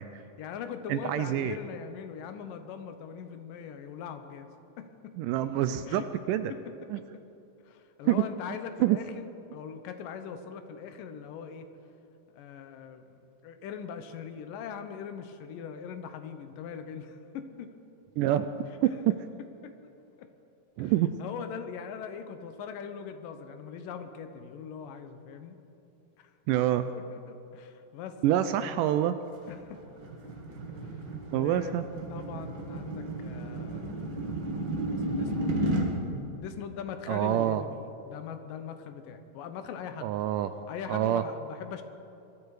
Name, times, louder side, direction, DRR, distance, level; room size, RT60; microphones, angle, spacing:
voice 1, 0.4-4.5 4.8-5.5 5.9-6.1 6.5-6.6 7.1-7.2 7.7-9.3 9.5-11.7 12.3-13.1 13.4-17.7 19.6-19.7 20.2-20.3 20.8-20.9 21.2-25.6 26.2-26.3 26.9-28.8 29.5-29.8 31.3-31.7 32.1-34.0 34.9-35.6 36.4-40.1 40.7-41.8, left 7 dB, 75° left, 8 dB, 2.5 m, -41 dB
voice 2, 0.9-1.6 5.2-6.0 6.3-6.5 6.9-7.0 8.0-8.2 8.8-9.0 18.2-18.5 18.8-18.9 20.8-21.2 26.5-26.9 28.2-29.1 31.1-31.8 37.1-37.6 40.0-40.5 40.9-41.2, right 12 dB, 80° right, 11 dB, 2.0 m, -26 dB
sound 1, 29.4-35.9, right 1 dB, 40° right, 1.9 m, -33 dB
22.0 x 13.5 x 4.8 m, 2.8 s
omnidirectional pair, 4.1 m